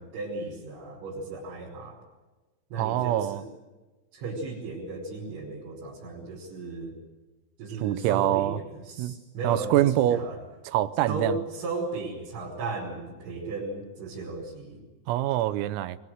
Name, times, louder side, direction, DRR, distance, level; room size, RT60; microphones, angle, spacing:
voice 1, 0.0-2.0 2.7-3.4 4.1-6.9 7.6-10.4 11.1-14.8, right 3 dB, 65° right, -4 dB, 7.7 m, -35 dB
voice 2, 2.8-3.4 7.8-8.6 9.0-9.2 9.4-10.3 10.7-11.4 15.1-16.0, right 14 dB, 85° right, 14 dB, 3.6 m, -25 dB
24.0 x 23.5 x 8.0 m, 1.2 s
omnidirectional pair, 6.0 m